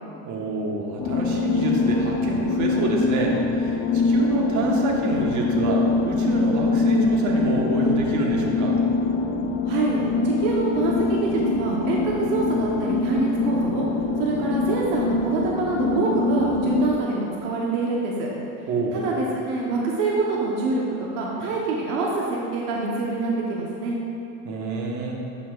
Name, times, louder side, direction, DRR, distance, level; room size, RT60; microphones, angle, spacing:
voice 1, 0.2-8.8 18.7-19.0 24.4-25.2, right 2 dB, 55° right, -1 dB, 1.3 m, -27 dB
sound 1, 1.0-16.9, left 3 dB, 60° left, 0.6 m, -24 dB
voice 2, 9.7-13.8 14.2-18.3 18.9-24.0, right 3 dB, 85° right, -3 dB, 1.0 m, -25 dB
11.0 x 5.7 x 2.4 m, 2.7 s
supercardioid pair, 105°, 35 cm